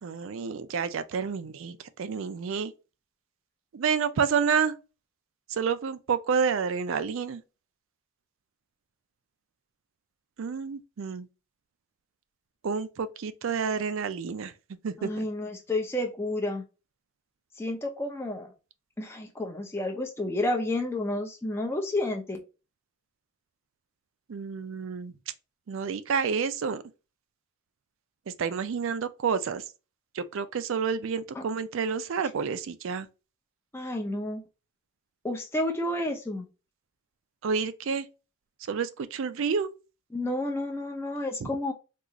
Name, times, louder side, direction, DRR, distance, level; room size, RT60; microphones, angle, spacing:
voice 1, 0.0-2.7 3.7-4.8 5.5-7.4 10.4-11.3 12.6-14.5 14.8-15.3 24.3-25.1 25.7-26.8 28.3-29.6 30.1-33.1 37.4-38.1 38.7-39.7 41.4-41.5, right 6 dB, 60° right, 0.4 m, -29 dB
voice 2, 15.0-16.6 17.6-18.5 19.0-22.4 31.3-31.4 33.7-34.4 35.2-36.5 40.1-41.7, left 1 dB, 10° left, 0.4 m, -30 dB
3.7 x 2.4 x 2.9 m
head